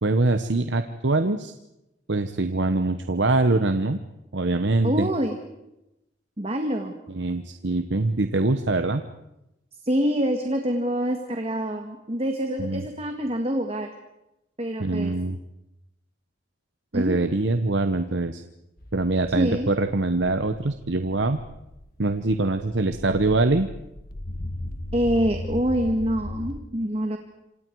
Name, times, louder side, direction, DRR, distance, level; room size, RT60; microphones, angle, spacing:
voice 1, 0.0-1.5 2.1-4.0 4.3-5.1 7.1-9.0 12.6-12.8 14.8-15.4 16.9-18.4 18.9-21.4 22.0-23.7, right 2 dB, 75° right, 9 dB, 1.1 m, -23 dB
voice 2, 4.8-5.4 6.4-6.9 9.8-13.9 14.6-15.1 16.9-17.2 19.4-19.7 24.9-27.2, equal, 35° right, 4 dB, 1.8 m, -26 dB
sound 1, 18.8-26.6, left 1 dB, 50° left, 1.7 m, -37 dB
27.5 x 26.5 x 4.7 m, 0.88 s
head